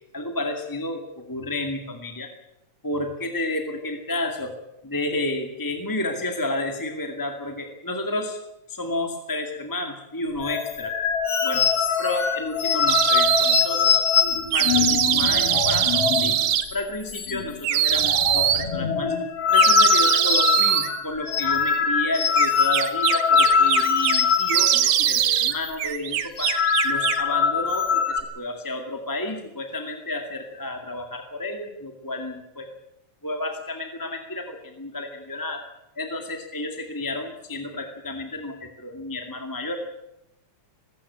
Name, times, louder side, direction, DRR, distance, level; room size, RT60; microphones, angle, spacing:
voice 1, 0.1-2.3 2.8-4.5 4.8-8.4 8.7-11.0 11.4-11.7 12.0-13.9 14.5-16.4 16.7-19.1 19.5-26.5 26.8-32.7 33.2-35.6 36.0-39.8, left 2 dB, 10° left, 4 dB, 1.8 m, -31 dB
sound 1, 10.4-16.4 16.7-16.8 17.1-17.6 17.9-25.3 25.5-25.8 26.2-28.2, left 6 dB, 55° left, 2.8 m, -23 dB
sound 2, 12.9-13.6 14.5-16.6 17.6-18.6 19.5-20.9 22.4-24.2 24.5-25.5 25.8-27.3, right 10 dB, 90° right, 2.7 m, -22 dB
20.5 x 16.5 x 8.6 m, 0.87 s
omnidirectional pair, 3.3 m